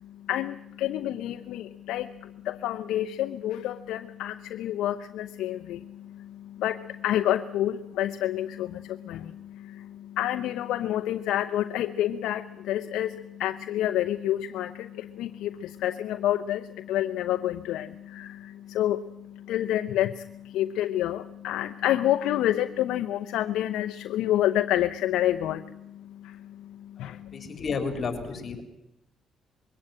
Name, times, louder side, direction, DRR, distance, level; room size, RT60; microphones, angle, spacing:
voice 1, 0.0-27.5, left 12 dB, 85° left, 8 dB, 0.7 m, -29 dB
voice 2, 27.0-28.6, left 4 dB, 50° left, 7 dB, 3.8 m, -33 dB
22.0 x 17.5 x 8.9 m, 0.82 s
cardioid pair, 90°, 0 cm